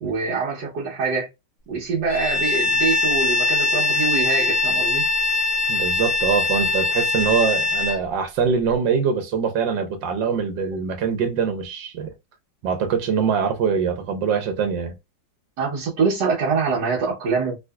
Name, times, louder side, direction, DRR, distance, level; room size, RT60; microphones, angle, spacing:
voice 1, 0.0-1.3 1.7-5.0 15.6-17.6, right 4 dB, 70° right, 1.6 m, -24 dB
Bowed string instrument, 2.1-8.0, left 2 dB, 60° left, 0.6 m, -22 dB
voice 2, 5.7-12.1 12.6-15.0, right 6 dB, 85° right, 1.5 m, -23 dB
3.7 x 2.8 x 2.2 m
omnidirectional pair, 2.0 m